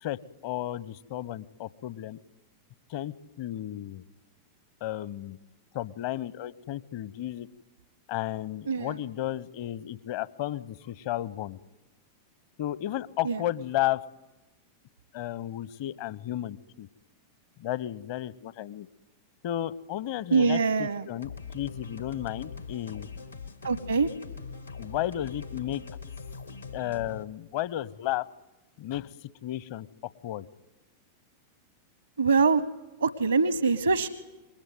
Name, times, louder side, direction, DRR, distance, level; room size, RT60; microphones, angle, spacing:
voice 1, 0.0-2.2 2.9-4.0 4.8-5.4 5.7-7.5 8.1-11.6 12.6-14.0 15.1-16.9 17.6-18.9 19.4-23.1 24.8-25.8 26.7-28.3 28.8-29.1 29.4-29.9 30.2-30.5, left 13 dB, 50° left, 21 dB, 0.9 m, -33 dB
voice 2, 20.3-21.1 23.6-24.1 32.2-32.6 33.0-34.1, right 4 dB, 75° right, 16 dB, 1.0 m, -24 dB
sound 1, 21.2-27.2, left 5 dB, 85° left, 2.0 m, -42 dB
28.0 x 21.5 x 9.4 m, 1.1 s
figure-of-eight pair, 90°, 0 cm